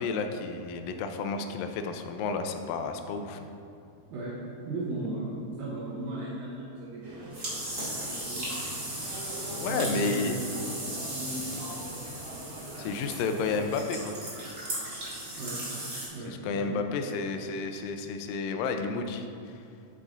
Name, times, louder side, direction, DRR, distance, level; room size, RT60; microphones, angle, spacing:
voice 1, 0.0-3.5 9.5-10.3 12.8-14.1 16.3-19.6, left 4 dB, 80° left, 6 dB, 2.1 m, -31 dB
voice 2, 4.7-8.5 9.7-12.0 15.4-15.6 16.1-17.1, right 2 dB, 75° right, -7 dB, 2.7 m, -37 dB
sound 1, 7.0-13.8, right 1 dB, 50° right, 2.4 m, -44 dB
sound 2, 7.3-16.1, right 1 dB, 35° right, 1.2 m, -37 dB
9.7 x 4.8 x 3.9 m, 2.5 s
omnidirectional pair, 4.4 m